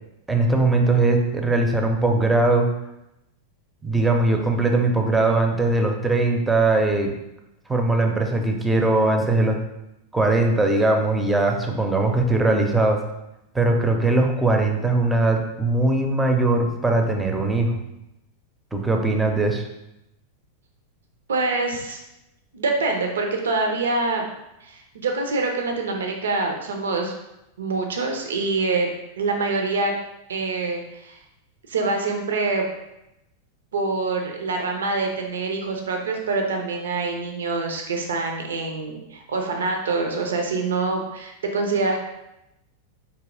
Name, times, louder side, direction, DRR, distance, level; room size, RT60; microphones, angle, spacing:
voice 1, 0.3-2.7 3.8-7.1 7.7-9.6 10.1-13.0 13.5-17.8 18.7-19.6, right 2 dB, 10° right, 3 dB, 0.6 m, -20 dB
voice 2, 21.3-22.0 22.5-24.3 24.6-27.1 27.6-28.9 29.2-29.9 30.3-31.2 31.7-32.7 33.7-42.0, right 3 dB, 65° right, 3 dB, 0.6 m, -25 dB
4.7 x 2.8 x 3.8 m, 0.89 s
figure-of-eight pair, 90°, 0 cm